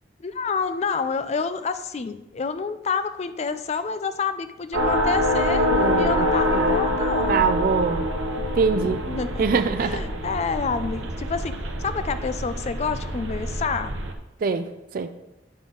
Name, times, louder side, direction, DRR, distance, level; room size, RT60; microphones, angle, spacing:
voice 1, 0.2-7.5 8.9-9.5 9.8-14.0, left 5 dB, 35° left, 11 dB, 0.3 m, -28 dB
sound 1, 4.7-14.1, left 1 dB, 90° right, 0.7 m, -25 dB
voice 2, 5.7-7.0 7.3-8.1 8.4-9.1 9.4-10.1 14.4-15.1, right 5 dB, 50° right, 9 dB, 0.4 m, -24 dB
10.0 x 3.6 x 3.8 m, 1.0 s
head